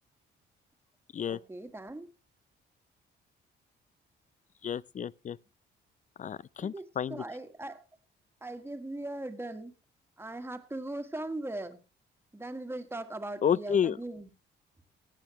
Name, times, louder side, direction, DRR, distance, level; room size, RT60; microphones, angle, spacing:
voice 1, 1.3-2.1 6.6-7.8 8.4-9.7 10.2-11.8 12.3-14.3, right 2 dB, 10° right, 1.7 m, -39 dB
voice 2, 4.6-5.4 6.2-7.2 13.4-14.0, left 8 dB, 40° left, 0.5 m, -30 dB
17.5 x 9.0 x 2.9 m
cardioid pair, 90°, 20 cm